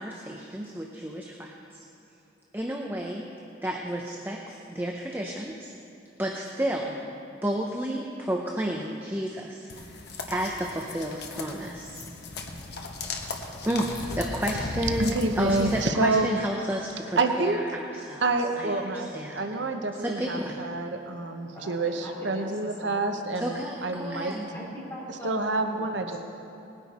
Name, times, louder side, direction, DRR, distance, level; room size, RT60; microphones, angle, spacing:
voice 1, 0.0-1.8 2.5-3.3 3.6-5.7 6.2-7.2 7.4-10.0 10.3-12.0 12.7-12.9 13.6-18.2 18.6-19.5 20.0-20.6 23.4-24.5, right 1 dB, 10° right, 0 dB, 0.7 m, -31 dB
sound 1, 9.7-15.9, left 2 dB, 60° left, 1.1 m, -36 dB
voice 2, 15.0-16.4 17.2-17.8 18.2-24.3 25.2-26.2, right 3 dB, 75° right, 5 dB, 0.9 m, -28 dB
voice 3, 21.5-23.0 24.5-25.9 26.1-26.2, equal, 15° left, -6 dB, 3.9 m, -41 dB
20.0 x 10.0 x 4.2 m, 2.8 s
head